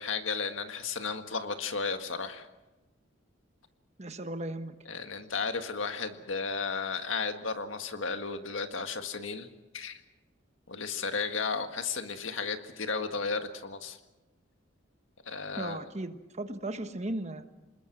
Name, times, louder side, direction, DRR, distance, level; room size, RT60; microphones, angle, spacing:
voice 1, 0.0-2.5 4.9-9.5 9.7-10.0 10.7-14.0 15.3-15.8, left 4 dB, 80° left, 7 dB, 1.7 m, -34 dB
voice 2, 4.0-4.7 15.6-17.4, right 1 dB, 35° right, 9 dB, 1.2 m, -36 dB
26.0 x 21.0 x 6.1 m, 1.1 s
head